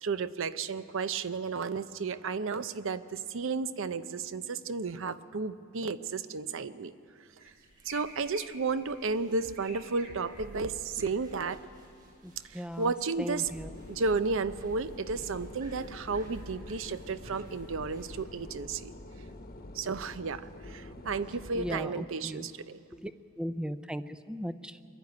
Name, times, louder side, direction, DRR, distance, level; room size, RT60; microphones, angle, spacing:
voice 1, 0.0-6.9 7.8-11.6 12.5-13.5 13.9-18.9 19.7-22.8, right 4 dB, 65° right, 14 dB, 0.6 m, -33 dB
sound 1, 7.3-19.3, right 1 dB, 45° right, 7.1 m, -53 dB
voice 2, 12.2-12.9 13.2-13.7 21.5-22.4 23.0-23.1 23.4-24.0 24.3-24.7, equal, 5° right, 12 dB, 0.5 m, -36 dB
sound 2, 13.5-21.8, left 1 dB, 45° left, 1.1 m, -46 dB
22.5 x 12.5 x 9.5 m, 2.5 s
head